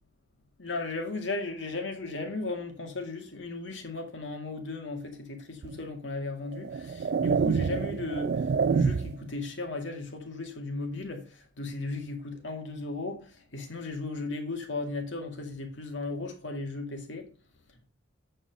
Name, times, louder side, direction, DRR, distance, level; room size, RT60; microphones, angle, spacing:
voice 1, 0.6-17.3, left 3 dB, 75° left, 2.2 m, -36 dB
sound 1, 5.6-5.8 6.5-9.3, right 5 dB, 60° right, 0.4 m, -27 dB
8.7 x 5.5 x 5.2 m
head